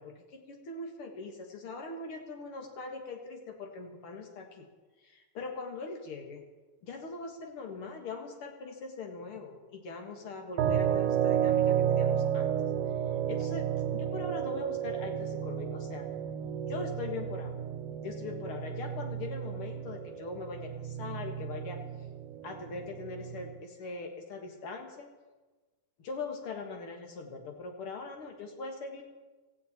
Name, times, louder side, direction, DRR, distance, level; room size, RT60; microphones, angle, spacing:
voice 1, 0.0-4.7 5.0-6.4 6.8-12.6 13.3-16.1 16.7-17.6 18.0-21.8 22.4-25.1 26.0-29.0, left 3 dB, 50° left, 3 dB, 2.4 m, -41 dB
sound 1, 10.6-23.6, right 9 dB, 80° right, 2.3 m, -32 dB
17.5 x 15.0 x 4.3 m, 1.3 s
omnidirectional pair, 3.6 m